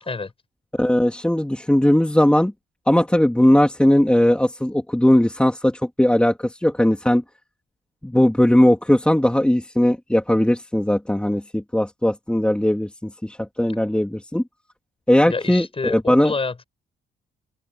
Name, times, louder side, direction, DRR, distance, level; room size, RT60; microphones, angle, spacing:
voice 1, 0.7-2.5 2.9-7.2 8.0-14.4 15.1-16.3, left 1 dB, 5° left, 3.0 m, -18 dB
voice 2, 15.2-16.6, left 4 dB, 30° left, 7.1 m, -28 dB
open air
cardioid pair, 90°, 20 cm